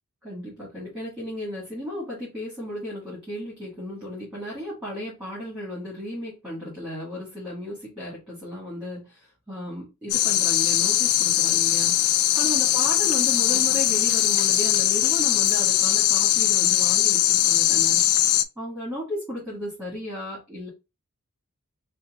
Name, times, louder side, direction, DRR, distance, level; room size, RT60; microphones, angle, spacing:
voice 1, 0.2-18.0 18.5-20.7, left 1 dB, 5° right, 1.6 m, -35 dB
sound 1, 10.1-18.4, left 12 dB, 75° left, 0.4 m, -21 dB
5.4 x 2.2 x 2.4 m
head